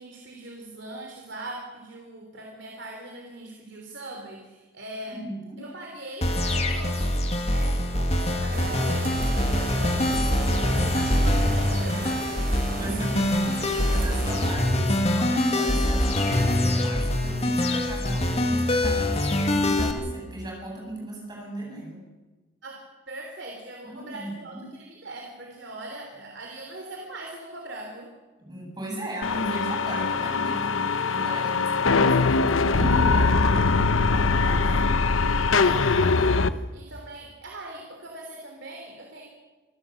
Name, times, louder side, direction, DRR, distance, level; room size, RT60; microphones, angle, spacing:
voice 1, 0.0-5.2 5.6-12.2 22.6-28.1 35.5-39.3, right 2 dB, 60° right, 1 dB, 3.3 m, -41 dB
voice 2, 5.1-5.6 12.8-13.2 13.5-22.1 23.8-24.7 28.4-35.0, right 1 dB, 20° right, -2 dB, 7.6 m, -37 dB
sound 1, 6.2-19.9, left 1 dB, 30° left, 2.3 m, -24 dB
sound 2, 8.5-14.6, right 3 dB, 45° right, 1.2 m, -35 dB
sound 3, 29.2-36.5, left 4 dB, 80° left, 0.9 m, -22 dB
26.0 x 15.0 x 7.7 m, 1.3 s
head